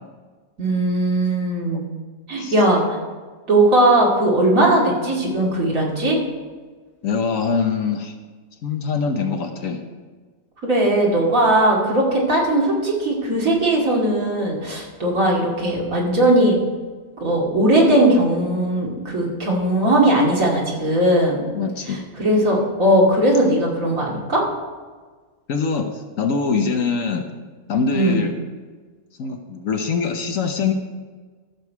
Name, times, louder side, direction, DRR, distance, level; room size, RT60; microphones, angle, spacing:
voice 1, 0.6-1.8 2.3-3.0 3.5-6.2 10.6-16.6 17.2-21.4 21.9-24.5 27.9-28.2, right 1 dB, 60° right, -3 dB, 2.6 m, -18 dB
voice 2, 7.0-8.1 8.6-9.8 21.5-22.0 25.5-25.9 26.2-27.2 27.7-28.3 29.2-30.7, left 5 dB, 60° left, 5 dB, 1.3 m, -23 dB
13.5 x 7.0 x 4.6 m, 1.4 s
omnidirectional pair, 1.6 m